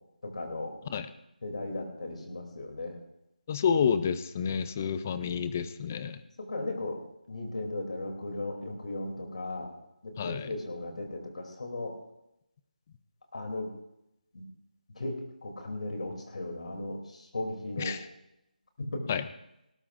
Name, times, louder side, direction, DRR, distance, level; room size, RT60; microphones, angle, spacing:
voice 1, 0.2-0.7 1.4-3.0 6.5-7.0 7.3-9.7 10.0-11.9 13.3-13.7 14.3-14.5 14.9-17.9 18.8-19.1, left 2 dB, 50° left, 3 dB, 2.9 m, -36 dB
voice 2, 3.5-6.2 10.2-10.5 17.8-18.0 19.1-19.2, left 7 dB, 15° left, 13 dB, 0.4 m, -29 dB
19.0 x 19.0 x 2.5 m, 0.84 s
figure-of-eight pair, 170°, 5 cm